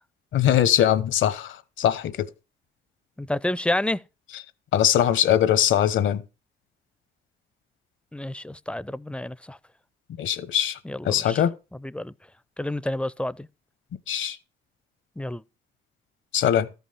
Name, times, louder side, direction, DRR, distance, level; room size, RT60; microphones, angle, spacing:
voice 1, 0.3-2.1 4.7-6.2 10.2-10.8 11.0-11.5 14.1-14.4 16.3-16.7, left 10 dB, 75° left, 1.1 m, -21 dB
voice 2, 3.2-4.0 8.1-9.6 10.8-11.4 11.8-12.1 12.6-13.5 15.2-15.4, left 1 dB, 5° left, 0.4 m, -29 dB
13.5 x 5.7 x 5.6 m
cardioid pair, 90°, 20 cm